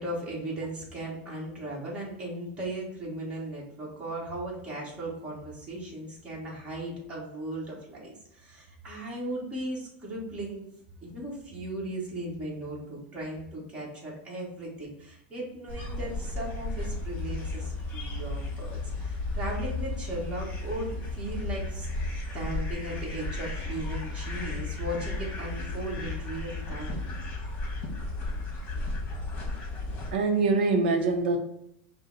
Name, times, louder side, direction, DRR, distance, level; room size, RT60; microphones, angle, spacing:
voice 1, 0.0-10.7 11.0-21.9 22.3-27.1, right 1 dB, 20° right, -4 dB, 1.3 m, -37 dB
sound 1, 15.7-30.1, left 2 dB, 25° left, 1.2 m, -34 dB
voice 2, 30.1-31.4, right 3 dB, 85° right, 5 dB, 0.6 m, -24 dB
5.3 x 2.1 x 4.0 m, 0.78 s
supercardioid pair, 155°, 6 cm